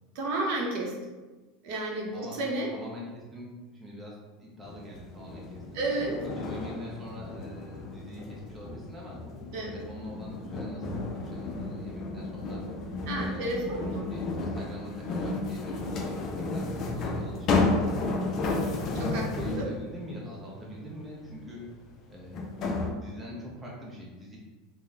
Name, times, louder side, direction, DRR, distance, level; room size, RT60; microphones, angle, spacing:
voice 1, 0.1-0.9 1.6-2.7 5.7-6.2 9.5-9.7 13.1-14.0 19.0-19.2 19.6-19.7, right 2 dB, 55° right, -1 dB, 0.7 m, -31 dB
voice 2, 2.7-5.8 6.4-9.2 9.6-12.6 13.1-17.8 18.5-21.7 22.1-22.5 23.0-24.4, equal, 10° right, -4 dB, 0.6 m, -44 dB
sound 1, 4.6-19.8 21.5-21.6 22.3-22.9, left 3 dB, 35° left, 0.5 m, -32 dB
3.9 x 2.1 x 3.5 m, 1.2 s
supercardioid pair, 160°, 0 cm